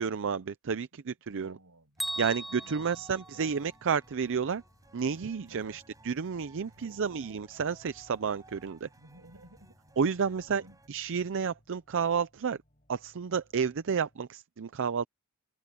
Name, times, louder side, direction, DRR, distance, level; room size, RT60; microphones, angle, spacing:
voice 1, 0.0-1.6 2.2-4.6 4.9-8.9 10.0-10.6 10.9-12.6 12.9-15.1, right 6 dB, 60° right, 0.5 m, -31 dB
voice 2, 1.3-2.1 2.5-3.1 3.3-3.4 5.5-5.8 6.6-7.1 9.0-9.8 10.2-10.8, right 2 dB, 80° right, 6.9 m, -55 dB
Bell, 2.0-4.0, equal, ahead, 0.5 m, -39 dB
sound 1, 2.0-10.9, right 2 dB, 15° right, 6.2 m, -59 dB
sound 2, 2.7-14.3, equal, 35° left, 6.7 m, -65 dB
head